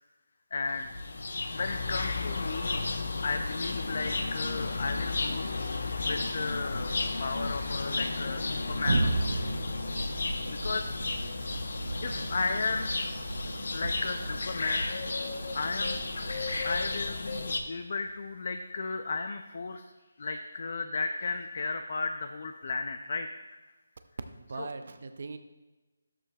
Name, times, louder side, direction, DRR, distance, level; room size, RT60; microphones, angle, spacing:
voice 1, 0.5-0.9 1.5-2.8 3.2-5.5 6.0-9.5 10.5-10.9 12.0-12.9 13.7-14.9 15.5-16.0 16.6-19.8 20.2-23.6 24.6-24.7, left 4 dB, 40° left, 5 dB, 0.4 m, -34 dB
sound 1, 0.7-17.6, left 3 dB, 65° left, 0.9 m, -33 dB
Thunder, 8.8-18.3, right 2 dB, 70° right, 0.9 m, -36 dB
voice 2, 24.3-25.4, right 4 dB, 45° right, 9 dB, 0.5 m, -40 dB
12.5 x 7.4 x 2.3 m, 1.2 s
hypercardioid pair, 175°, 0 cm